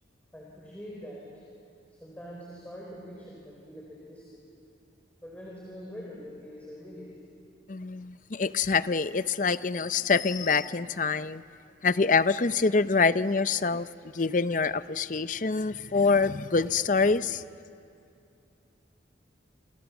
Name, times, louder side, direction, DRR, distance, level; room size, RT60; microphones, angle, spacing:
voice 1, 0.3-1.2 2.0-4.2 5.2-7.1, equal, 10° left, 4.2 m, -44 dB
voice 2, 7.7-11.4 11.8-13.9 14.1-17.4, left 4 dB, 40° left, 0.6 m, -25 dB
28.0 x 26.0 x 7.2 m
head